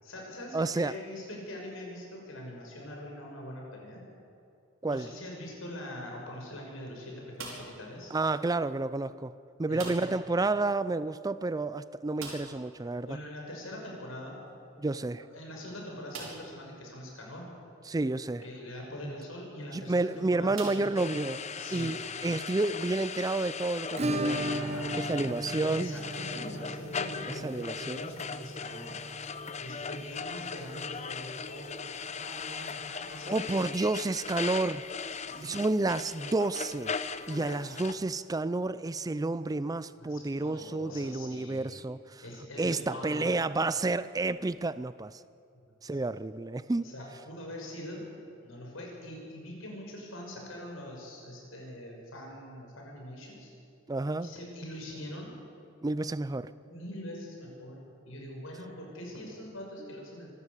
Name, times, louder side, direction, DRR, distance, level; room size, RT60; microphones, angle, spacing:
voice 1, 0.0-4.0 4.9-8.1 9.7-10.1 13.1-14.4 15.2-17.5 18.4-21.2 21.6-22.1 24.4-25.2 25.7-29.0 29.6-33.5 35.2-35.6 37.3-37.8 39.5-39.6 40.0-41.7 42.2-43.4 45.5-46.0 46.8-48.1 48.4-53.5 54.2-55.3 56.6-57.8 58.1-60.3, left 1 dB, 80° left, 6.0 m, -43 dB
voice 2, 0.5-1.0 4.8-5.1 8.1-9.3 9.6-13.1 14.8-15.2 17.9-18.4 19.7-21.4 21.7-24.4 24.9-25.9 27.4-28.1 33.3-34.8 35.4-36.9 37.3-42.2 42.6-45.2 45.8-46.9 53.9-54.3 55.8-56.5, right 2 dB, 20° right, 0.4 m, -30 dB
sound 1, 7.3-7.9 9.7-10.3 10.6-10.7 11.0-11.1 12.1-12.7 14.5-14.6 15.2-15.3 16.1-16.6 17.3-17.4 19.4-19.6 20.5-21.4, right 3 dB, 85° right, 5.2 m, -43 dB
sound 2, 21.0-37.9, left 5 dB, 35° left, 0.7 m, -39 dB
Acoustic guitar / Strum, 24.0-32.6 32.8-32.9 33.2-33.3 33.7-33.8 35.8-35.9 37.1-37.2, right 1 dB, 35° right, 1.3 m, -37 dB
25.5 x 13.0 x 8.2 m
head